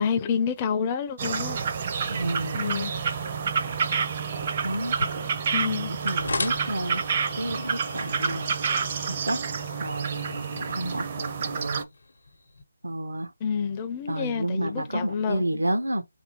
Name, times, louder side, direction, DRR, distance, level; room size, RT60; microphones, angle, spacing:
voice 1, 0.0-1.6 2.5-2.9 5.5-5.9 13.4-15.4, left 6 dB, 20° left, 0.4 m, -28 dB
sound 1, 1.2-11.8, right 6 dB, 35° right, 0.5 m, -29 dB
voice 2, 2.1-2.7 4.6-5.0 5.8-8.6 9.1-9.4 9.8-11.9 12.8-13.3 14.1-16.0, right 1 dB, 90° right, 0.8 m, -31 dB
sound 2, 4.7-12.6, left 3 dB, 70° left, 0.7 m, -38 dB
3.2 x 2.6 x 2.9 m
figure-of-eight pair, 160°, 0 cm